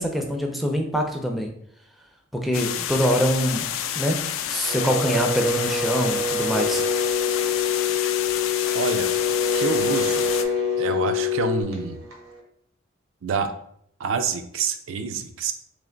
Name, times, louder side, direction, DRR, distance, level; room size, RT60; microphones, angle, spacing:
voice 1, 0.0-1.5 2.3-3.6 4.0-4.2 4.5-6.8, equal, ahead, 2 dB, 0.4 m, -24 dB
sound 1, 2.5-10.4, left 10 dB, 70° left, 0.3 m, -29 dB
sound 2, 4.6-12.4, right 2 dB, 85° right, 0.9 m, -29 dB
sound 3, 6.5-11.6, left 17 dB, 45° left, 0.8 m, -26 dB
voice 2, 8.7-9.1 9.5-10.3 10.8-12.0 13.2-13.5 14.0-15.5, right 5 dB, 65° right, 8 dB, 0.4 m, -27 dB
3.3 x 2.8 x 3.7 m, 0.69 s
head